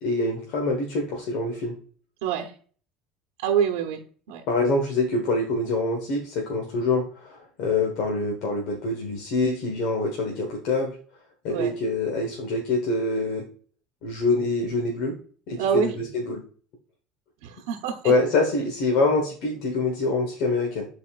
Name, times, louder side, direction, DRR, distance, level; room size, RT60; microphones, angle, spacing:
voice 1, 0.0-1.7 4.5-11.0 11.4-13.4 14.0-15.1 15.5-16.4 18.0-20.9, left 2 dB, 70° left, 1 dB, 1.3 m, -25 dB
voice 2, 3.4-4.0 4.3-4.4 11.5-11.7 15.6-15.9 17.4-18.1, right 8 dB, 85° right, 3 dB, 0.9 m, -25 dB
9.6 x 4.2 x 2.5 m, 0.43 s
supercardioid pair, 105°, 0 cm